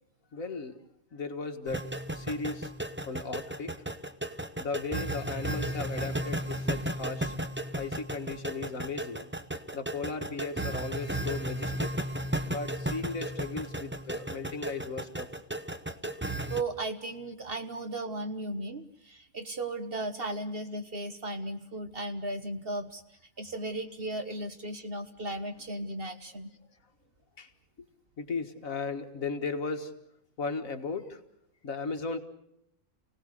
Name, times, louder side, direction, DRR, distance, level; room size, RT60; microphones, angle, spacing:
voice 1, 0.3-0.8 1.1-2.7 3.1-3.8 4.6-7.3 7.8-9.3 9.7-11.9 12.5-15.3 27.4-27.5 28.2-29.9 30.4-31.2 31.6-32.2, left 4 dB, 65° left, 6 dB, 2.0 m, -36 dB
sound 1, 1.7-16.6, right 1 dB, 10° right, 0.8 m, -34 dB
voice 2, 16.5-26.5, right 2 dB, 40° right, 8 dB, 1.4 m, -36 dB
29.0 x 18.0 x 6.6 m, 0.78 s
omnidirectional pair, 1.5 m